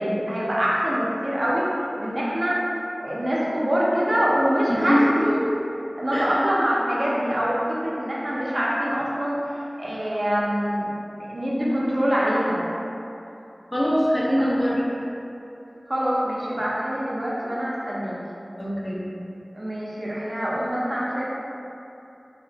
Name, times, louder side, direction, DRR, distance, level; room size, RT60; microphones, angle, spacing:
voice 1, 0.0-1.7 2.0-2.6 3.0-5.4 6.0-9.4 9.8-12.6 14.4-14.5 15.9-18.2 19.5-21.3, equal, 45° right, -7 dB, 0.6 m, -24 dB
voice 2, 4.7-5.2 6.1-6.5 13.7-14.8 18.6-19.1, equal, 25° left, -7 dB, 0.7 m, -23 dB
2.4 x 2.0 x 3.8 m, 2.8 s
wide cardioid pair, 50°, 0 cm